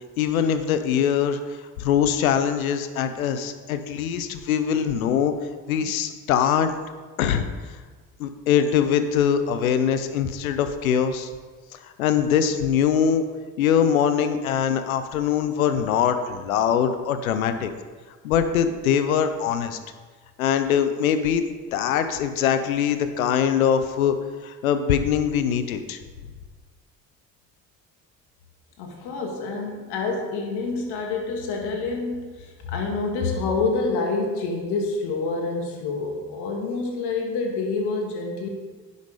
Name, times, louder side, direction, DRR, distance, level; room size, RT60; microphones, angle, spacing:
voice 1, 0.2-1.4 1.8-5.3 5.7-6.7 7.2-7.5 8.2-11.3 12.0-13.2 13.6-17.7 18.2-19.8 20.4-24.2 24.4-26.0, left 8 dB, 85° left, 10 dB, 0.7 m, -22 dB
voice 2, 28.8-38.5, left 3 dB, 70° left, 2 dB, 1.9 m, -27 dB
10.5 x 6.7 x 4.9 m, 1.4 s
hypercardioid pair, 45°, 41 cm